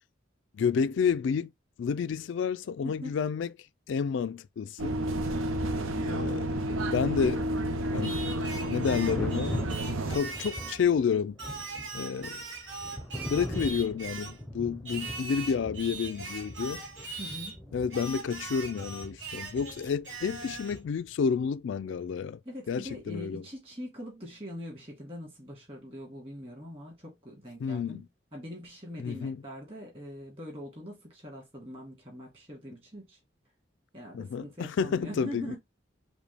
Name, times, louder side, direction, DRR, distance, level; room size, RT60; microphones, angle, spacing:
voice 1, 0.5-1.5 1.8-3.5 3.9-5.0 6.1-6.5 6.9-7.5 7.9-8.2 8.7-9.6 10.1-11.4 11.9-12.4 13.3-16.8 17.7-22.4 22.7-23.4 27.6-28.1 29.0-29.4 34.1-35.6, left 6 dB, 65° left, 0.3 m, -30 dB
voice 2, 2.8-3.1 5.3-6.4 17.2-17.6 22.5-28.0 28.3-33.2 33.9-35.6, equal, 30° right, 1.9 m, -43 dB
sound 1, 4.8-10.2, right 1 dB, 85° right, 0.6 m, -30 dB
Thunder, 7.6-21.2 22.9-23.1, equal, 5° left, 0.6 m, -41 dB
Singing, 8.0-10.9 11.4-14.4 14.8-17.6 17.9-20.8, right 3 dB, 70° right, 1.8 m, -41 dB
5.0 x 2.2 x 3.3 m
head